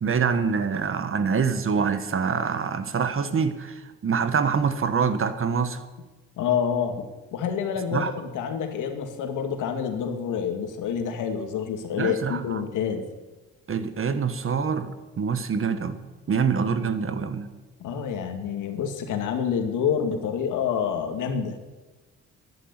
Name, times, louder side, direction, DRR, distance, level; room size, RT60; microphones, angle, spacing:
voice 1, 0.0-5.8 7.9-8.1 12.0-12.6 13.7-16.0 16.3-17.5, right 6 dB, 45° right, 11 dB, 1.6 m, -25 dB
voice 2, 6.4-7.1 7.3-13.1 17.8-21.6, left 7 dB, 85° left, 6 dB, 2.3 m, -27 dB
11.0 x 11.0 x 9.8 m, 1.2 s
cardioid pair, 90°, 30 cm